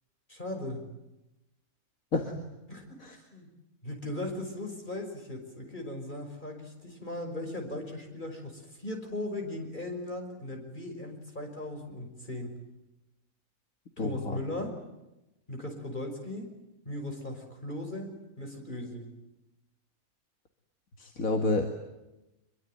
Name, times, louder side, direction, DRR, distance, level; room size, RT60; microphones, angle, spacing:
voice 1, 0.3-0.8 2.7-2.9 3.1-3.5 3.8-12.5 14.0-14.7 15.5-16.5 16.8-19.1, left 1 dB, 35° left, 3 dB, 5.9 m, -38 dB
voice 2, 14.0-14.4 21.0-21.6, left 3 dB, 70° left, 4 dB, 2.5 m, -29 dB
25.5 x 23.0 x 9.2 m, 0.97 s
omnidirectional pair, 1.5 m